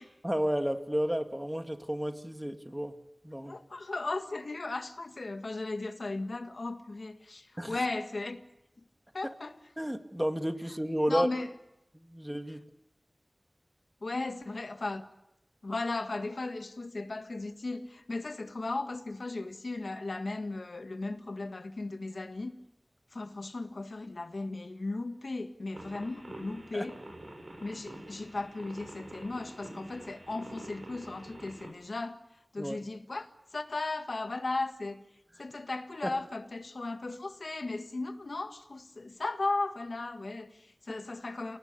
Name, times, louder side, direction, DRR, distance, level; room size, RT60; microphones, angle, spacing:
voice 1, 0.2-3.0 3.2-3.5 7.6-7.8 9.8-11.3 11.9-12.7 26.7-26.9 32.6-32.8 36.0-36.1, equal, 10° right, 2.1 m, -32 dB
voice 2, 3.4-8.4 9.1-9.6 11.1-11.5 14.0-15.1 15.6-22.6 23.1-27.0 27.6-32.2 32.5-35.0 35.4-41.6, left 2 dB, 85° left, 1.7 m, -36 dB
sound 1, 25.7-31.7, right 1 dB, 75° right, 7.2 m, -47 dB
29.5 x 18.5 x 6.8 m
wide cardioid pair, 50°, 0 cm